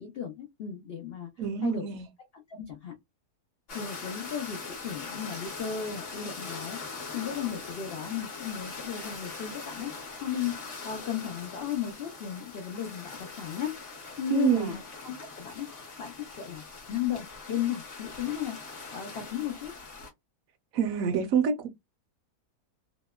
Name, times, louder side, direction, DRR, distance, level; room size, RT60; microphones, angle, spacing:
voice 1, 0.0-1.3 1.6-1.8 2.5-2.9 3.7-9.9 10.2-13.7 14.2-15.7 16.0-18.6 18.9-19.7, left 9 dB, 85° left, 0.5 m, -35 dB
voice 2, 1.4-2.1 14.3-14.7 20.7-21.7, right 7 dB, 70° right, 0.9 m, -26 dB
sound 1, 3.7-20.1, left 4 dB, 45° left, 0.9 m, -42 dB
2.8 x 2.0 x 2.2 m
omnidirectional pair, 1.6 m